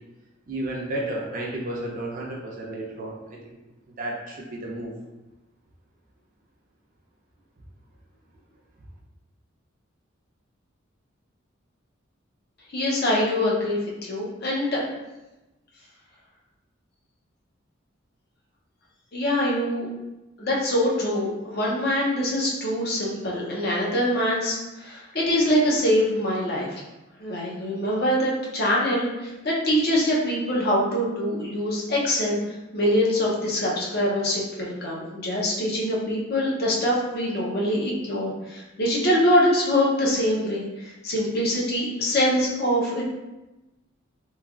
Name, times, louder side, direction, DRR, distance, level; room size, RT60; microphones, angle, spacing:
voice 1, 0.5-3.6 4.0-4.9, right 1 dB, 40° right, -2 dB, 0.5 m, -32 dB
voice 2, 12.7-14.8 19.1-19.9 20.4-26.8 27.2-43.1, equal, 50° left, -4 dB, 0.7 m, -24 dB
3.1 x 2.3 x 2.4 m, 1.0 s
head